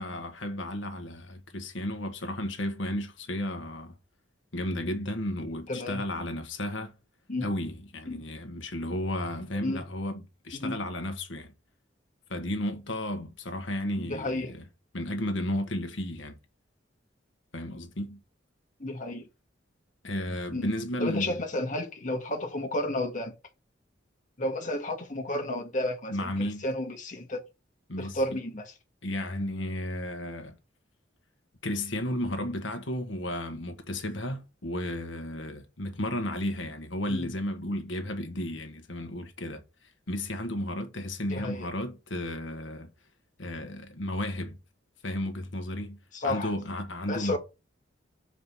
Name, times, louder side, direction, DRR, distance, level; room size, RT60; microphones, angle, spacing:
voice 1, 0.0-3.9 4.5-6.9 7.4-11.5 12.3-14.6 14.9-16.3 17.5-18.2 20.0-21.4 26.1-26.6 27.9-28.2 29.0-30.5 31.6-42.9 43.4-44.6 45.0-46.0 46.2-47.4, left 1 dB, 80° left, 1.4 m, -33 dB
voice 2, 5.7-6.0 7.3-7.5 8.1-8.2 9.6-9.8 10.5-10.8 14.0-14.5 18.8-19.3 20.5-20.7 21.0-23.3 24.4-27.4 28.0-28.7 37.1-37.3 41.3-41.7 46.1-46.5 47.1-47.4, left 1 dB, 40° left, 1.9 m, -32 dB
5.4 x 4.9 x 6.1 m
head